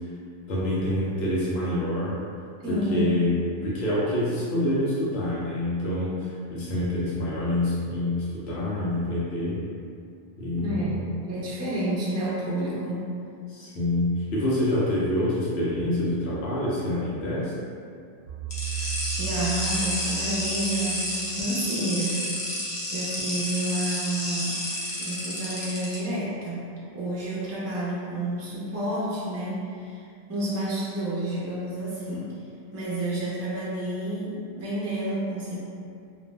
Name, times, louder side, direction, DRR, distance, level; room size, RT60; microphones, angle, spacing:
voice 1, 0.5-2.2 2.7-3.3 3.6-9.6 10.4-11.1 13.5-17.5, left 1 dB, 85° left, -8 dB, 0.9 m, -26 dB
voice 2, 2.6-3.2 10.6-13.1 18.8-18.9 19.2-22.2 22.9-24.6 25.0-32.3 32.7-35.6, right 1 dB, 20° right, -8 dB, 0.4 m, -30 dB
sound 1, 18.3-21.4, right 8 dB, 65° right, 0.7 m, -35 dB
sound 2, 18.5-25.9, left 1 dB, 40° left, 0.7 m, -30 dB
2.5 x 2.1 x 3.1 m, 2.4 s
omnidirectional pair, 1.1 m